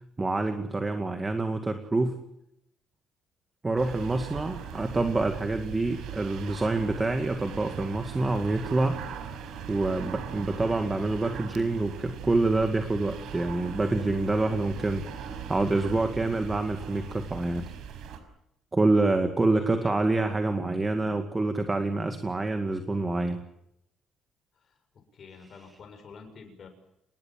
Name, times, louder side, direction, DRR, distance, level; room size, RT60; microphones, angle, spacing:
voice 1, 0.2-2.2 3.6-9.0 9.7-17.7 18.7-23.4, right 2 dB, 15° right, 7 dB, 2.2 m, -27 dB
sound 1, 3.8-18.2, right 7 dB, 70° right, 5.4 m, -40 dB
voice 2, 19.5-20.4 24.6-24.8 25.1-26.7, left 5 dB, 40° left, 6 dB, 7.2 m, -48 dB
28.0 x 20.5 x 7.7 m, 0.79 s
cardioid pair, 145°, 0 cm